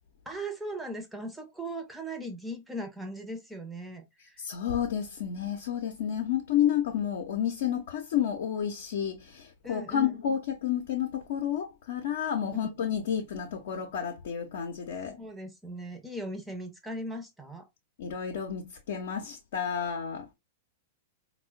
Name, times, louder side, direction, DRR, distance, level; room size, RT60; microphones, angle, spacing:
voice 1, 0.3-4.4 9.6-10.2 12.5-12.7 15.2-17.7, right 1 dB, 5° right, 0.6 m, -38 dB
voice 2, 4.4-15.2 18.0-20.3, left 9 dB, 60° left, 0.5 m, -30 dB
4.2 x 2.1 x 2.3 m
figure-of-eight pair, 100°, 0 cm